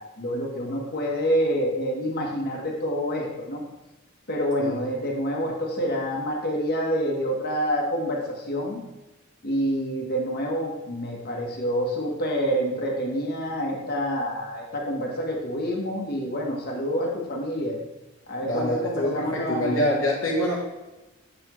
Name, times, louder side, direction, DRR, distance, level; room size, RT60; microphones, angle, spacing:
voice 1, 0.0-3.6 4.3-8.8 9.4-17.8 18.3-19.9, equal, 50° left, -1 dB, 1.3 m, -27 dB
voice 2, 18.4-20.5, left 1 dB, 65° left, -4 dB, 1.1 m, -26 dB
7.4 x 5.7 x 3.1 m, 1.1 s
head